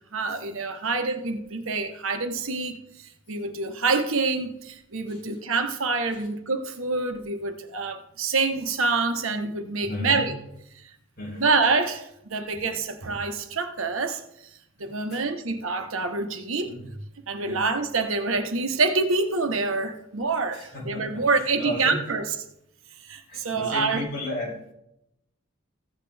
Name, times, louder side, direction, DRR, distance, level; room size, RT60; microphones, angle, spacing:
voice 1, 0.1-10.3 11.4-14.5 14.8-16.9 17.3-22.2 23.0-24.0, right 3 dB, 80° right, 1.1 m, -26 dB
voice 2, 9.8-10.3 11.2-11.4 12.5-12.6 14.8-15.2 17.4-17.7 20.5-22.0 23.3-24.7, left 1 dB, 50° left, 4.4 m, -35 dB
14.5 x 8.2 x 3.4 m
head